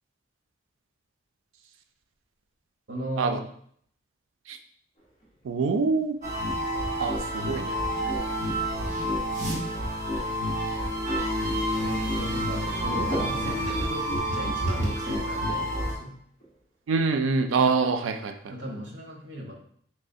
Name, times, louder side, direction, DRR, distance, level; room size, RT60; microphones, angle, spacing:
voice 1, 2.9-3.4 11.8-16.1 18.5-19.5, right 1 dB, 70° right, 0 dB, 0.9 m, -37 dB
sound 1, 5.0-11.7 12.1-16.6 16.9-17.4, right 1 dB, 30° left, 0.8 m, -42 dB
voice 2, 5.4-6.1 7.0-7.8 16.9-18.5, right 4 dB, 90° right, 7 dB, 0.4 m, -25 dB
sound 2, 6.2-15.9, equal, 40° right, 1.1 m, -28 dB
3.5 x 3.2 x 2.6 m, 0.63 s
head